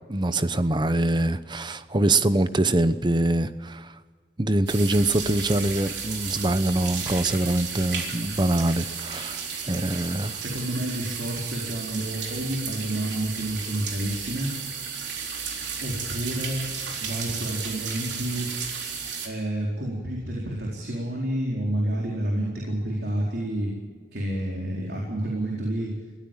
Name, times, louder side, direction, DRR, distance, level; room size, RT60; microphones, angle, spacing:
voice 1, 0.1-4.0 4.4-10.4, right 1 dB, 25° right, 12 dB, 0.9 m, -24 dB
sound 1, 4.7-19.3, right 6 dB, 85° right, 3.9 m, -33 dB
voice 2, 10.4-14.5 15.8-16.6 17.0-18.5 19.2-23.7 24.1-25.9, right 1 dB, 60° right, -2 dB, 4.4 m, -29 dB
22.0 x 17.0 x 7.4 m, 1.5 s
head